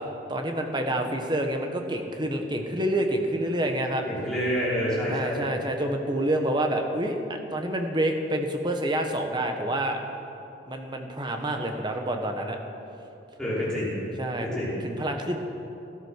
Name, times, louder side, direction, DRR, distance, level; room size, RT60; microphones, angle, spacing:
voice 1, 0.3-4.0 5.1-10.0 10.7-12.6 14.2-14.5 14.8-15.4, right 1 dB, 20° right, 4 dB, 1.3 m, -28 dB
voice 2, 4.1-5.5 13.4-13.9 14.4-14.8, equal, 5° left, -9 dB, 5.0 m, -28 dB
17.0 x 13.0 x 6.5 m, 2.9 s
head